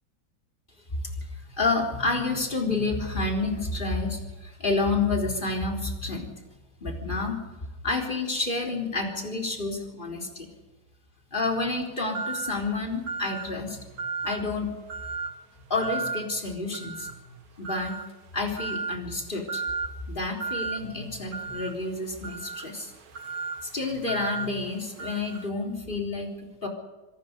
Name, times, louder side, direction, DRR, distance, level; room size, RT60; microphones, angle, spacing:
voice 1, 0.9-6.3 6.8-7.4 7.8-10.5 11.3-13.9 14.2-14.7 15.7-17.1 17.6-18.0 18.3-19.6 20.1-22.9 23.6-26.7, left 3 dB, 30° left, 1 dB, 4.1 m, -29 dB
sound 1, 12.1-12.6 13.1-13.5 14.0-14.5 14.9-15.3 15.8-16.2 16.7-17.2 17.6-18.1 18.6-19.0 19.5-19.9 20.4-20.8 21.3-25.5, right 5 dB, 60° right, 1.9 m, -34 dB
27.0 x 18.5 x 5.3 m, 1.2 s
omnidirectional pair, 1.8 m